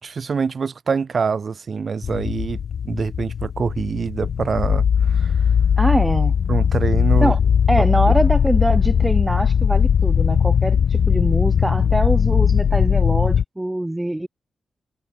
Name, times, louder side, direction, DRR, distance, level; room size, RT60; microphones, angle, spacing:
voice 1, 0.0-2.6 2.8-5.3 6.5-7.3, right 5 dB, 60° right, 3.2 m, -25 dB
sound 1, 2.0-13.4, left 7 dB, 75° left, 1.4 m, -19 dB
voice 2, 5.8-6.3 7.2-7.4 7.7-14.3, right 1 dB, 15° right, 6.0 m, -23 dB
supercardioid pair, 50°, 0 cm